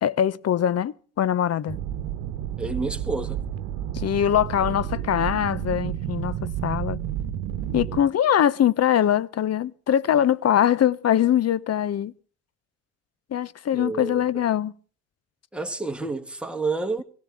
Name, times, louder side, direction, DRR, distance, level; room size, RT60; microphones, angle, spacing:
voice 1, 0.0-1.8 3.9-7.0 7.7-12.1 13.3-14.7, left 10 dB, 40° left, 0.7 m, -22 dB
sound 1, 1.7-8.0, right 11 dB, 75° right, 1.1 m, -31 dB
voice 2, 2.6-3.4 13.7-14.4 15.5-17.0, right 3 dB, ahead, 1.8 m, -29 dB
17.5 x 16.5 x 3.6 m
hypercardioid pair, 60°, 41 cm